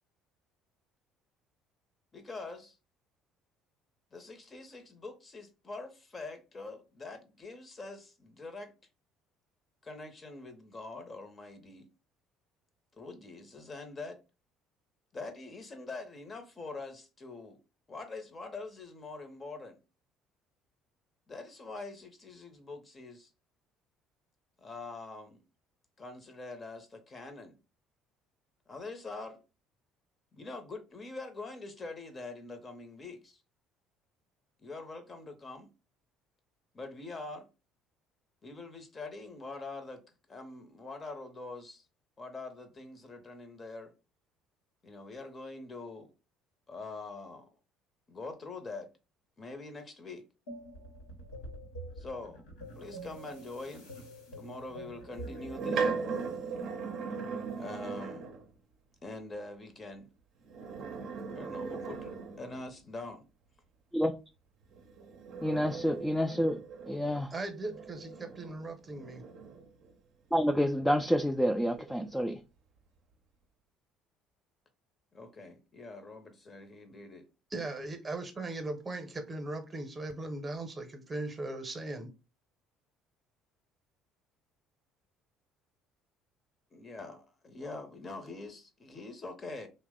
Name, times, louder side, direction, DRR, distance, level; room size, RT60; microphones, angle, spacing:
voice 1, 2.1-2.8 4.1-8.7 9.8-11.9 13.0-14.2 15.1-17.6 17.9-19.8 21.3-23.3 24.6-25.4 26.0-27.5 28.7-29.4 30.3-33.4 34.6-35.7 36.7-37.5 38.4-40.0 40.3-41.8 42.2-43.9 44.8-46.1 46.7-47.5 48.1-48.9 49.4-50.3 52.0-52.4 52.8-53.9 54.3-55.9 57.6-58.3 59.0-60.1 61.3-63.2 75.1-77.3 86.7-89.7, left 3 dB, 35° left, 0.7 m, -44 dB
sound 1, 50.5-55.6, right 1 dB, 90° left, 0.9 m, -46 dB
sound 2, 55.1-58.5 60.4-62.8 64.7-69.9 70.4-72.2, right 5 dB, 60° right, 0.5 m, -39 dB
voice 2, 65.4-67.3 70.3-72.4, equal, 5° left, 0.3 m, -28 dB
voice 3, 67.3-69.2 77.5-82.1, right 2 dB, 30° right, 0.8 m, -38 dB
2.8 x 2.1 x 3.6 m
hypercardioid pair, 65°, 0 cm